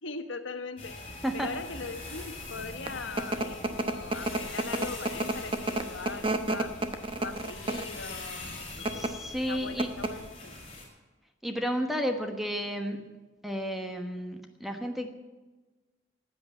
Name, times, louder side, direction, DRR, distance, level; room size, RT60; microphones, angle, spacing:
voice 1, 0.0-0.9 1.3-6.7 7.2-10.5, left 4 dB, 80° left, 8 dB, 1.2 m, -40 dB
sound 1, 0.8-10.9, left 3 dB, 30° left, 4.4 m, -43 dB
sound 2, 2.6-8.0 8.7-9.1 9.5-9.6 9.8-10.3, right 2 dB, 25° right, 0.8 m, -30 dB
voice 2, 8.9-9.9 11.4-13.0 13.4-15.1, equal, ahead, 4 dB, 1.1 m, -32 dB
14.5 x 8.3 x 9.3 m, 1.2 s
head